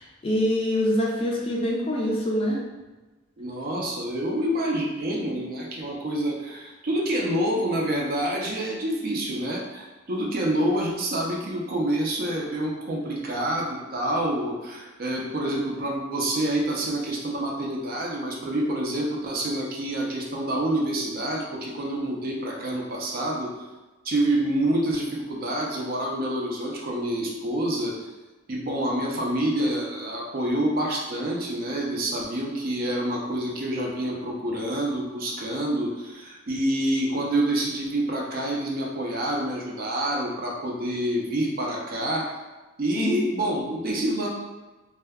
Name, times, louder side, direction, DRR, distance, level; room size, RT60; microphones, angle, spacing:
voice 1, 0.0-2.7 42.9-43.1, equal, 25° left, -2 dB, 0.3 m, -25 dB
voice 2, 3.4-23.5 24.0-28.0 28.5-42.3 42.8-44.3, right 1 dB, 45° right, -2 dB, 0.4 m, -27 dB
2.2 x 2.1 x 3.4 m, 1.2 s
head